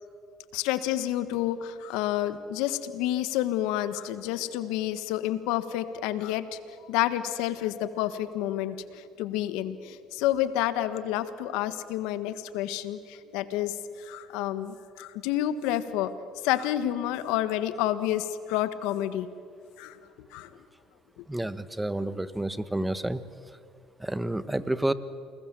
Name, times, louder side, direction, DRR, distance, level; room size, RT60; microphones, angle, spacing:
voice 1, 0.5-6.6 6.9-16.1 16.4-19.3 19.8-20.0 20.3-20.5, left 12 dB, 80° left, 12 dB, 1.5 m, -29 dB
voice 2, 21.3-23.2 24.0-24.9, right 1 dB, 10° right, 14 dB, 1.4 m, -29 dB
28.5 x 21.0 x 7.7 m, 2.4 s
supercardioid pair, 80°, 0 cm